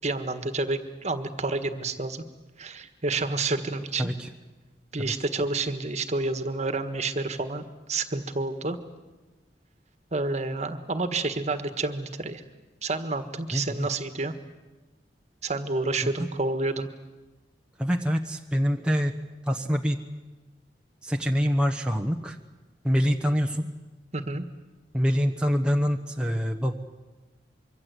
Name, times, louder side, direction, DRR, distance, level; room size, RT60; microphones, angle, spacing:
voice 1, 0.0-2.2 2.6-4.1 4.9-8.8 10.1-12.4 12.8-14.3 15.4-16.9 24.1-24.5, right 3 dB, 40° right, 9 dB, 1.6 m, -29 dB
voice 2, 4.0-4.3 5.0-5.1 13.5-13.9 16.0-16.1 17.8-19.2 19.5-20.0 21.0-22.4 22.8-23.7 24.9-26.7, equal, 5° right, 2 dB, 1.1 m, -25 dB
25.0 x 24.0 x 8.3 m, 1.2 s
head